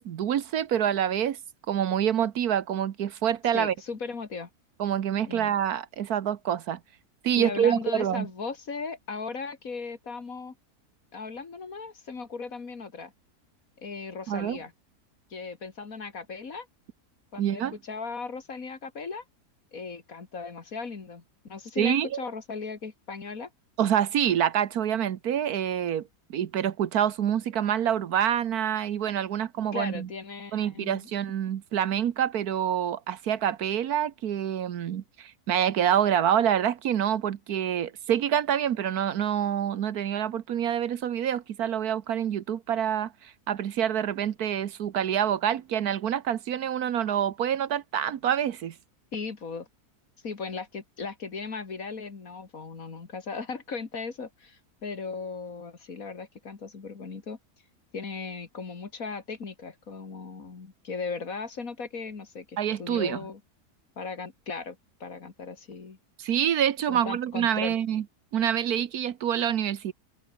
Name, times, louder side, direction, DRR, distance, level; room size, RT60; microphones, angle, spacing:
voice 1, 0.0-1.4 1.7-3.7 4.8-6.8 7.2-8.3 14.3-14.6 17.4-17.7 21.8-22.2 23.8-30.1 30.5-48.7 62.6-63.2 66.2-68.0 68.3-69.9, right 9 dB, 70° right, 1.4 m, -26 dB
voice 2, 3.5-4.5 5.3-5.5 7.4-10.5 11.1-13.1 13.8-14.7 15.3-16.7 17.3-19.2 19.7-23.5 29.7-31.1 49.1-49.7 50.2-57.4 57.9-63.4 64.0-66.0 66.9-67.8, left 4 dB, 60° left, 2.7 m, -37 dB
omnidirectional pair, 1.7 m